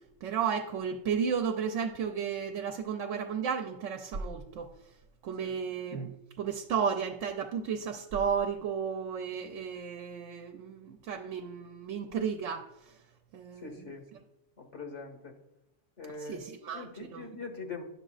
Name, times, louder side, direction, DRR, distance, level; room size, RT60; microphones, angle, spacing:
voice 1, 0.2-4.7 5.2-6.1 6.4-12.7 13.3-13.9 16.2-17.3, right 7 dB, 80° right, 6 dB, 0.9 m, -33 dB
voice 2, 13.6-14.0 14.6-15.3 16.0-16.4 16.7-17.8, left 4 dB, 75° left, 3 dB, 1.6 m, -42 dB
11.0 x 6.7 x 2.4 m, 0.88 s
omnidirectional pair, 1.2 m